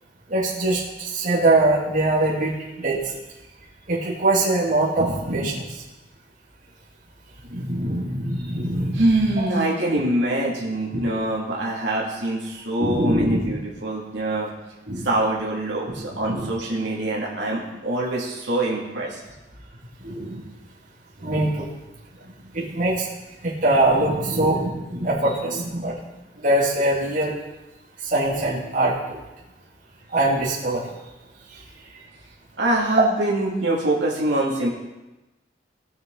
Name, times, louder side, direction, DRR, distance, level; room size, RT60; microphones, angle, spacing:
voice 1, 0.3-3.0 3.9-5.6 7.5-9.3 10.9-11.2 12.8-13.5 14.9-15.1 16.2-16.5 20.0-20.4 21.2-21.7 22.5-23.1 23.4-25.9 26.4-27.3 28.0-29.2 30.1-30.9, right 2 dB, 45° right, -5 dB, 2.5 m, -23 dB
voice 2, 8.9-14.5 15.0-19.2 32.6-34.7, right 1 dB, 70° right, -4 dB, 2.4 m, -24 dB
19.0 x 6.9 x 3.9 m, 1.1 s
head